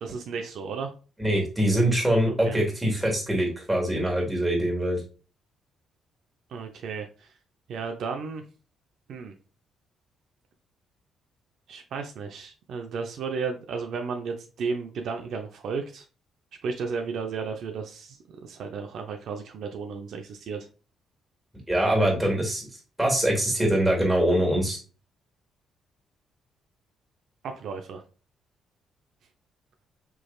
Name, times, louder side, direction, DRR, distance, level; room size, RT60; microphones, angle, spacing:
voice 1, 0.0-0.9 2.3-2.6 6.5-7.3 7.7-8.4 9.1-9.3 11.7-16.0 16.6-20.7 27.4-28.0, right 5 dB, 70° right, 4 dB, 0.6 m, -33 dB
voice 2, 1.2-5.0 21.7-24.8, right 1 dB, 10° right, -1 dB, 2.0 m, -24 dB
4.6 x 3.2 x 2.3 m, 0.35 s
cardioid pair, 90°, 0 cm